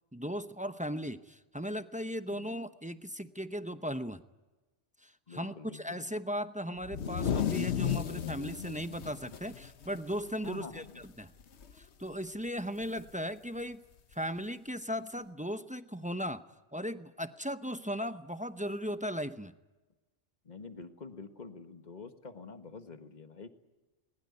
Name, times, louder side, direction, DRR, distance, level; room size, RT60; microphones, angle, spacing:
voice 1, 0.1-4.2 5.0-11.3 11.7-13.8 14.1-16.4 16.7-19.5, equal, 10° right, 10 dB, 0.6 m, -37 dB
voice 2, 5.3-6.1 10.4-11.0 20.5-23.5, left 4 dB, 40° left, 8 dB, 1.6 m, -47 dB
sound 1, 6.8-10.5 10.9-11.0 11.4-11.9 13.0-13.1 14.1-14.2, left 8 dB, 65° left, 1.2 m, -34 dB
20.5 x 20.5 x 9.6 m, 1.2 s
omnidirectional pair, 1.2 m